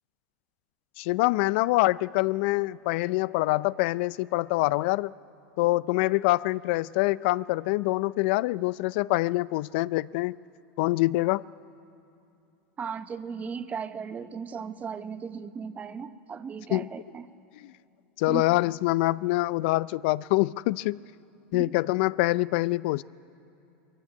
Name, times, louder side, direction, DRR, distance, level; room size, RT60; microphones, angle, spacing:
voice 1, 1.0-5.1 5.6-10.4 10.8-11.4 16.7-16.9 18.2-21.0 21.5-23.0, left 20 dB, 65° left, 20 dB, 0.4 m, -25 dB
voice 2, 12.8-17.3 18.3-18.4 21.5-21.8, right 6 dB, 25° right, 11 dB, 1.0 m, -36 dB
22.0 x 15.0 x 9.6 m, 2.8 s
hypercardioid pair, 115°, 6 cm